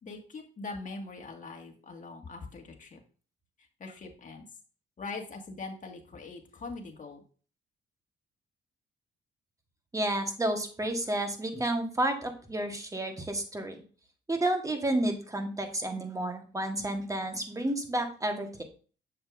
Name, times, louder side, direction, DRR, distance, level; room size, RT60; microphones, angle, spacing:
voice 1, 0.0-3.0 3.8-4.4 5.0-7.2, left 3 dB, 40° left, 2 dB, 1.8 m, -42 dB
voice 2, 9.9-13.8 14.3-18.6, right 1 dB, 15° right, 5 dB, 1.3 m, -31 dB
7.3 x 7.0 x 2.6 m, 0.39 s
cardioid pair, 90°, 20 cm